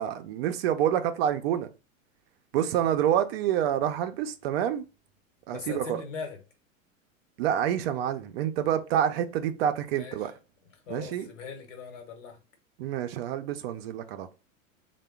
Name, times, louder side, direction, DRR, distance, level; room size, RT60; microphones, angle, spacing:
voice 1, 0.0-1.7 2.5-4.8 5.5-6.0 7.4-10.3 10.9-11.3 12.8-14.3, right 10 dB, 50° right, 0.5 m, -27 dB
voice 2, 5.5-6.4 9.9-10.2 10.9-12.4, left 6 dB, 65° left, 1.1 m, -40 dB
3.5 x 2.1 x 3.4 m
figure-of-eight pair, 95°, 41 cm